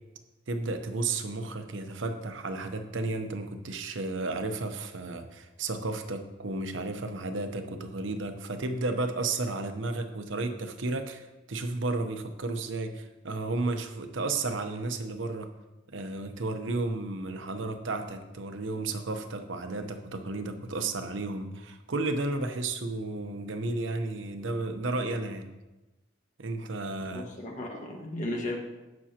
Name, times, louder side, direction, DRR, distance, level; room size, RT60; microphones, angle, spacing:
voice 1, 0.5-15.5 15.9-25.5 26.4-27.3, right 2 dB, 90° right, 7 dB, 0.9 m, -33 dB
voice 2, 27.1-28.6, left 1 dB, 40° left, 0 dB, 1.6 m, -35 dB
17.0 x 6.2 x 2.9 m, 1.1 s
head